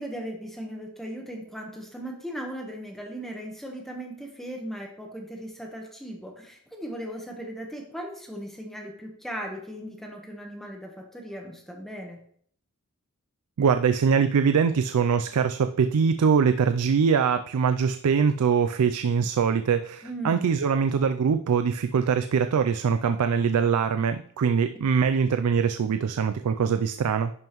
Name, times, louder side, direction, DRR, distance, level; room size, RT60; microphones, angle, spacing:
voice 1, 0.0-12.2 20.0-20.5, equal, ahead, 0 dB, 1.1 m, -37 dB
voice 2, 13.6-27.3, right 6 dB, 90° right, 10 dB, 0.4 m, -23 dB
11.0 x 5.4 x 3.0 m, 0.62 s
head